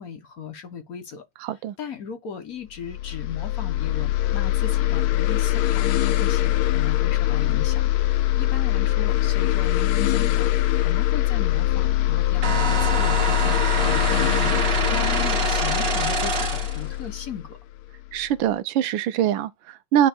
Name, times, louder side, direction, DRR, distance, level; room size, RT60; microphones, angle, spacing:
voice 1, 0.0-1.2 1.8-10.5 10.8-17.6, left 7 dB, 55° left, 1.4 m, -37 dB
voice 2, 1.4-1.7 18.1-20.1, right 10 dB, 90° right, 1.5 m, -23 dB
sound 1, 2.8-18.2, left 14 dB, 75° left, 0.9 m, -23 dB
sound 2, 12.4-16.8, right 4 dB, 35° right, 1.4 m, -26 dB
9.2 x 3.1 x 4.4 m
omnidirectional pair, 2.1 m